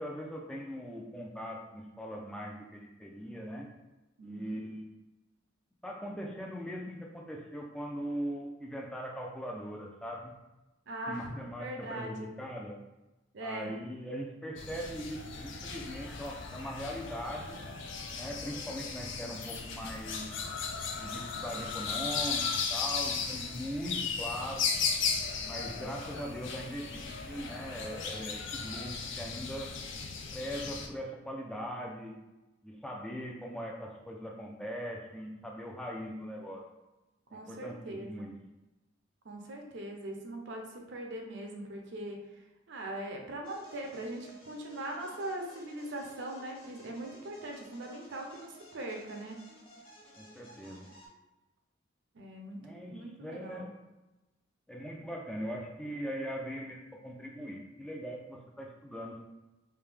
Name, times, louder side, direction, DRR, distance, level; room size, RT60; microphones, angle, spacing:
voice 1, 0.0-3.7 4.2-4.9 5.8-10.3 10.9-12.8 13.4-17.6 18.1-20.5 21.0-24.7 25.4-29.7 30.3-32.2 32.6-36.6 37.3-38.4 50.2-50.9 52.6-53.7 54.7-59.2, equal, 5° left, -1 dB, 0.4 m, -40 dB
voice 2, 4.2-4.6 10.9-12.3 13.3-13.7 37.3-38.3 39.2-42.2 42.7-49.4 52.1-52.6 52.9-53.7, right 1 dB, 65° right, 2 dB, 0.6 m, -41 dB
sound 1, 14.6-30.9, left 5 dB, 65° left, 0.5 m, -36 dB
sound 2, 43.4-51.1, right 1 dB, 25° left, 1.0 m, -55 dB
3.4 x 2.7 x 3.4 m, 1.0 s
head